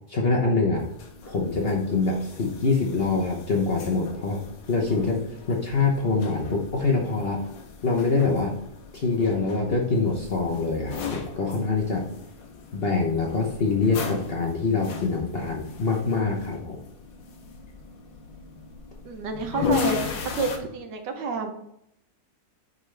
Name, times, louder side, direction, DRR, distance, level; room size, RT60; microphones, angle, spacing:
voice 1, 0.1-0.8 1.3-5.2 5.5-7.4 7.8-8.6 8.9-12.1 12.7-16.8, left 4 dB, 45° left, -1 dB, 0.8 m, -25 dB
sound 1, 0.7-20.6, left 6 dB, 80° left, 1.6 m, -37 dB
voice 2, 19.0-21.5, right 4 dB, 70° right, 6 dB, 1.4 m, -29 dB
9.3 x 3.8 x 3.3 m, 0.76 s
omnidirectional pair, 2.0 m